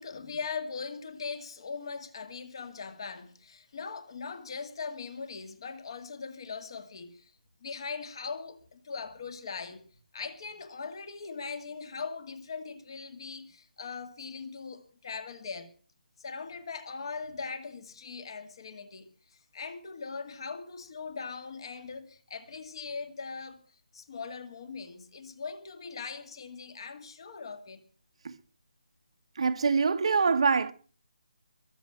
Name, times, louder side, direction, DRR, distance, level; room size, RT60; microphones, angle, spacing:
voice 1, 0.0-7.3 7.6-9.9 10.1-15.7 16.2-23.6 23.9-27.8, left 5 dB, 35° left, 2.1 m, -40 dB
voice 2, 29.4-30.7, right 5 dB, 40° right, 1.1 m, -24 dB
22.0 x 7.4 x 7.7 m
hypercardioid pair, 175°, 5 cm